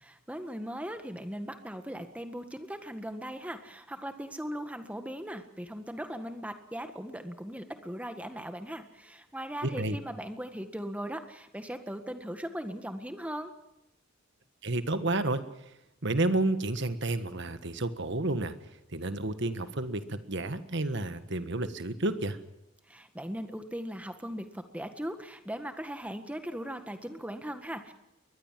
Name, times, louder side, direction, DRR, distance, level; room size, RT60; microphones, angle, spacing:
voice 1, 0.0-13.5 22.9-27.9, equal, 5° right, 8 dB, 1.6 m, -39 dB
voice 2, 9.6-10.0 14.6-15.4 16.0-18.5 18.9-22.4, right 2 dB, 55° right, 10 dB, 1.6 m, -30 dB
22.5 x 20.5 x 7.6 m, 0.89 s
head